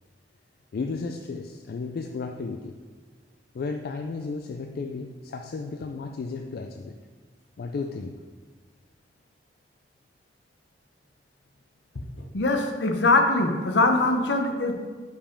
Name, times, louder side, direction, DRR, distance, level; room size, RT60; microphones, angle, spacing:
voice 1, 0.7-2.8 3.5-7.0 7.6-8.2, left 4 dB, 60° left, 5 dB, 0.3 m, -33 dB
voice 2, 12.3-14.7, left 2 dB, 75° left, 4 dB, 0.8 m, -22 dB
5.4 x 5.0 x 5.0 m, 1.5 s
head